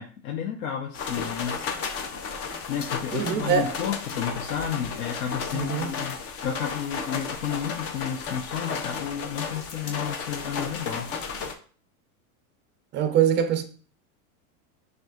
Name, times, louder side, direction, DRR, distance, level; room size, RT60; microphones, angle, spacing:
voice 1, 0.0-1.7 2.7-6.2 6.4-11.1, left 8 dB, 80° left, 0.7 m, -32 dB
sound 1, 0.9-11.5, left 5 dB, 35° left, 0.6 m, -33 dB
voice 2, 3.1-3.8 5.5-6.0 12.9-13.6, right 8 dB, 25° right, 0.5 m, -24 dB
6.1 x 2.5 x 2.4 m
supercardioid pair, 125°, 42 cm